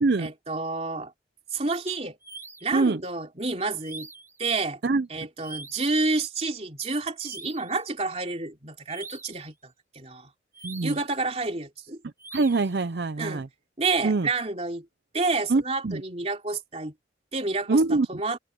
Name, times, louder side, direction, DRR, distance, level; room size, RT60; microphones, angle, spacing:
voice 1, 0.2-1.1 1.5-2.2 2.6-4.1 4.4-4.8 5.1-10.3 10.8-12.0 13.2-13.4 13.8-14.9 15.1-16.9 17.3-18.4, right 3 dB, 35° right, 3.1 m, -29 dB
sound 1, 2.2-2.8 3.8-4.4 5.4-6.0 7.2-7.8 8.9-9.4 10.5-11.1 12.2-12.8, right 3 dB, 15° right, 2.5 m, -43 dB
voice 2, 10.6-11.0 12.0-13.5 14.0-14.3 15.5-16.0 17.7-18.2, right 3 dB, 65° right, 0.6 m, -24 dB
open air
head